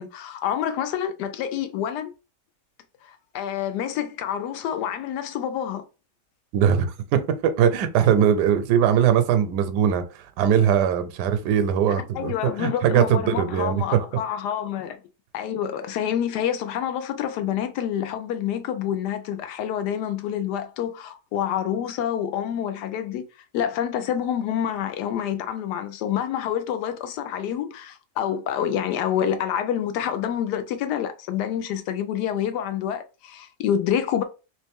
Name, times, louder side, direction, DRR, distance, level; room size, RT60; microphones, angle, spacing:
voice 1, 0.0-2.1 3.0-5.8 12.1-15.0 15.3-23.2 23.5-34.2, left 9 dB, 85° left, 1.2 m, -27 dB
voice 2, 6.5-10.0 10.4-14.0, right 8 dB, 85° right, 1.2 m, -21 dB
3.1 x 3.0 x 3.4 m
omnidirectional pair, 1.7 m